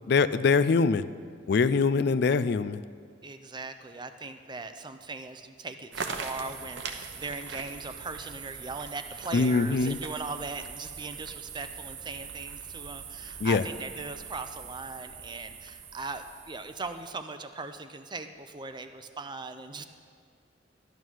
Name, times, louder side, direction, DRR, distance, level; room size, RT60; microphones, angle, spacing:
voice 1, 0.1-1.0 1.5-2.8 9.3-10.0 13.4-13.6, left 4 dB, 65° left, 13 dB, 0.4 m, -23 dB
voice 2, 3.2-19.8, right 3 dB, 25° right, 9 dB, 0.6 m, -39 dB
sound 1, 5.9-17.1, right 6 dB, 85° right, 1.0 m, -41 dB
12.5 x 9.2 x 6.3 m, 2.1 s
head